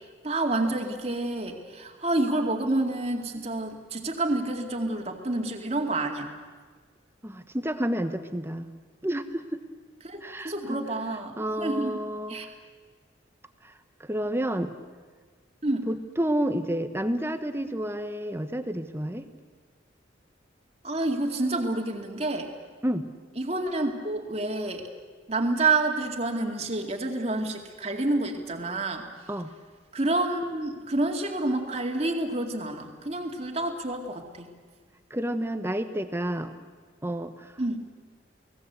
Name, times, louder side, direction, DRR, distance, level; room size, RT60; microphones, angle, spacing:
voice 1, 0.2-6.3 10.0-12.0 12.3-12.5 15.6-15.9 20.8-22.5 23.4-24.8 25.3-29.1 29.9-34.5 37.6-37.8, right 2 dB, 35° right, 2 dB, 2.3 m, -28 dB
voice 2, 7.2-8.7 9.0-9.6 10.2-10.8 11.4-12.4 14.0-14.7 15.9-19.3 22.8-23.1 29.3-29.5 35.1-36.5 37.0-37.5, right 1 dB, 15° right, 9 dB, 1.0 m, -30 dB
29.0 x 19.0 x 8.1 m, 1.5 s
head